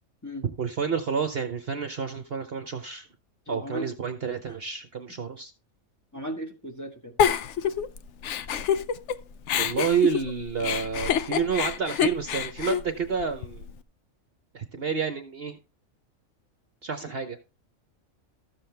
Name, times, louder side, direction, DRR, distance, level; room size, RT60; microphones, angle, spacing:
voice 1, 0.6-3.1 3.5-5.5 9.6-13.7 14.5-15.6 16.8-17.4, right 6 dB, 50° right, 1.0 m, -29 dB
voice 2, 3.5-3.9 4.5-4.6 6.1-7.1, equal, 15° left, 1.6 m, -36 dB
Giggle, 7.2-9.2 9.5-13.7, left 8 dB, 65° left, 0.9 m, -27 dB
13.5 x 7.5 x 3.3 m
omnidirectional pair, 1.5 m